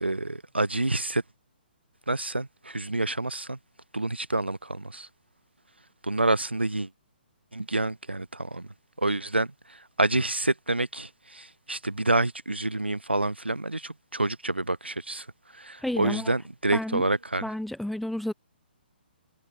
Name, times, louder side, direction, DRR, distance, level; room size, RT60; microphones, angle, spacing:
voice 1, 0.0-1.2 2.1-3.6 3.9-5.1 6.0-6.9 7.5-8.7 9.0-9.5 10.0-15.3 15.5-17.4, right 2 dB, 90° right, 0.8 m, -28 dB
voice 2, 15.8-16.3 16.7-17.0 17.4-18.3, left 1 dB, ahead, 0.4 m, -31 dB
figure-of-eight pair, 130°, 6 cm